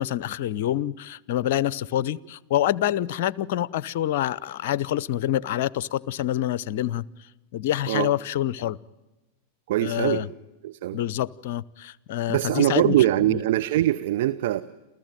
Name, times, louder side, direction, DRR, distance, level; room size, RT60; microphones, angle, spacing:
voice 1, 0.0-8.8 9.8-10.3 10.9-13.0 13.3-13.4, left 12 dB, 60° left, 22 dB, 0.7 m, -27 dB
voice 2, 9.7-10.2 10.6-11.0 12.3-14.6, right 14 dB, 60° right, 11 dB, 0.8 m, -22 dB
28.5 x 14.5 x 9.1 m, 1.1 s
figure-of-eight pair, 95°, 0 cm